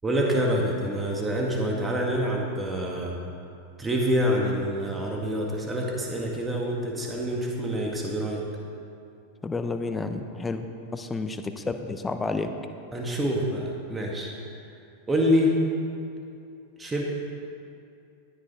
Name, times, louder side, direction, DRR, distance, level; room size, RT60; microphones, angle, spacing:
voice 1, 0.0-3.2 3.8-8.4 12.9-14.3 15.1-15.6 16.8-17.0, equal, 15° right, -1 dB, 1.9 m, -26 dB
voice 2, 9.4-10.7 10.9-12.5, left 3 dB, 15° left, 7 dB, 0.8 m, -30 dB
13.5 x 9.8 x 4.4 m, 2.6 s
hypercardioid pair, 100°, 0 cm